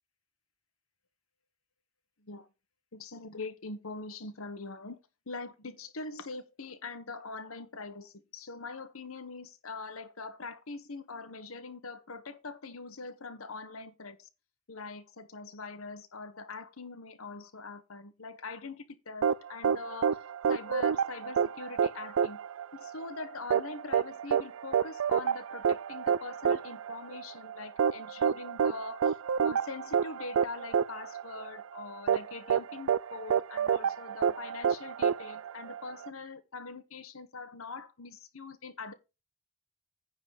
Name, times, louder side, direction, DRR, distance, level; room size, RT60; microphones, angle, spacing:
voice 1, 2.9-5.0 5.3-14.3 14.7-20.2 20.5-22.4 22.7-29.1 29.4-38.9, left 3 dB, 80° left, 1.2 m, -43 dB
sound 1, 19.2-36.1, right 7 dB, 75° right, 0.4 m, -29 dB
9.7 x 4.0 x 6.4 m
head